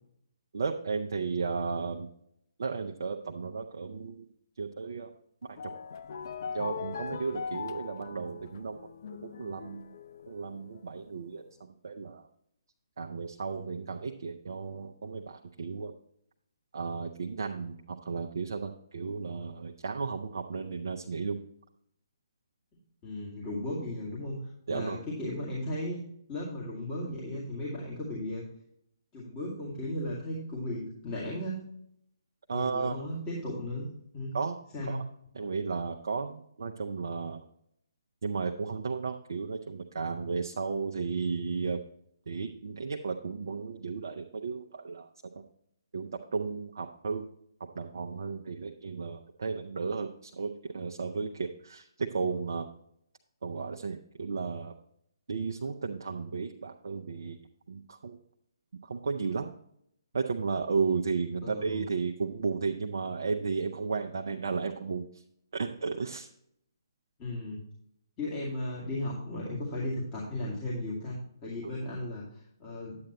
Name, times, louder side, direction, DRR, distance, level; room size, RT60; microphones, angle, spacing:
voice 1, 0.5-2.1 2.6-4.3 4.6-5.1 5.4-5.7 6.5-8.9 9.2-10.0 10.3-12.3 13.0-15.9 16.7-21.4 24.7-25.0 32.5-33.1 34.3-34.6 34.9-35.0 35.3-37.4 38.2-41.8 42.3-45.4 45.9-47.3 47.6-52.7 53.4-54.7 55.3-57.4 57.7-58.2 58.8-59.5 60.1-65.2 65.5-66.3, right 5 dB, 55° right, 2 dB, 0.6 m, -34 dB
sound 1, 5.4-11.3, left 6 dB, 50° left, 0.5 m, -41 dB
voice 2, 23.0-26.0 26.3-28.4 29.1-31.6 32.5-33.9 34.1-34.3 34.7-35.0 61.4-61.8 67.2-67.6 68.2-73.0, left 1 dB, 20° left, -7 dB, 2.1 m, -36 dB
9.6 x 8.7 x 3.0 m, 0.72 s
figure-of-eight pair, 135°, 2 cm